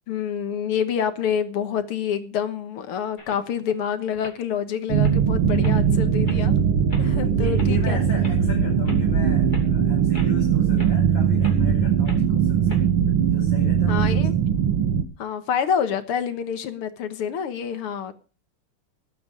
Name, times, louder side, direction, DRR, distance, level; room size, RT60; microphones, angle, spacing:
voice 1, 0.1-6.6 7.0-8.0 13.9-14.3 15.2-18.1, left 8 dB, 85° left, 10 dB, 2.2 m, -27 dB
sound 1, 3.2-3.7 4.1-4.4 4.8-5.2 5.6-5.8 6.3-6.4 6.9-7.1 7.6-7.7 8.2-8.4 8.8-9.0 9.5-9.7 10.1-10.4 10.8-10.9 11.4-11.6 12.0-12.2 12.7-12.8, left 2 dB, 20° left, 2.9 m, -40 dB
sound 2, 4.9-15.0, right 8 dB, 80° right, 2.2 m, -20 dB
voice 2, 7.1-12.9 13.3-14.3, left 1 dB, 60° left, -2 dB, 5.6 m, -36 dB
18.5 x 8.8 x 5.1 m, 0.36 s
omnidirectional pair, 2.4 m